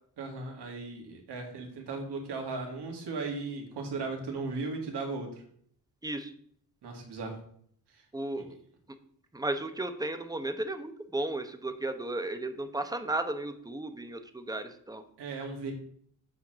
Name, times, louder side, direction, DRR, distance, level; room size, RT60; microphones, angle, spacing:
voice 1, 0.2-5.4 6.8-7.4 8.4-8.5 15.2-15.7, right 3 dB, 80° right, 2 dB, 2.0 m, -37 dB
voice 2, 8.1-8.5 9.3-15.0, right 2 dB, 10° right, 8 dB, 0.8 m, -34 dB
7.4 x 4.5 x 6.2 m, 0.62 s
cardioid pair, 115°, 40 cm